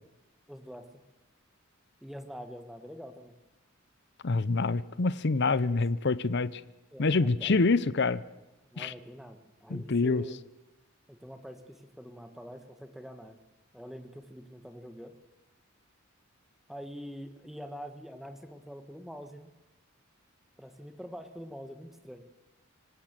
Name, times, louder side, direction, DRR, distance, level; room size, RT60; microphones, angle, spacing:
voice 1, 0.5-1.0 2.0-3.3 5.6-5.8 6.9-7.8 8.7-10.4 11.1-13.4 13.7-15.1 16.7-19.5 20.6-22.2, equal, ahead, 7 dB, 1.5 m, -45 dB
voice 2, 4.2-6.6 7.0-8.2 8.8-8.9 9.7-10.2, left 3 dB, 55° left, 17 dB, 0.7 m, -26 dB
25.0 x 18.5 x 7.6 m, 1.0 s
head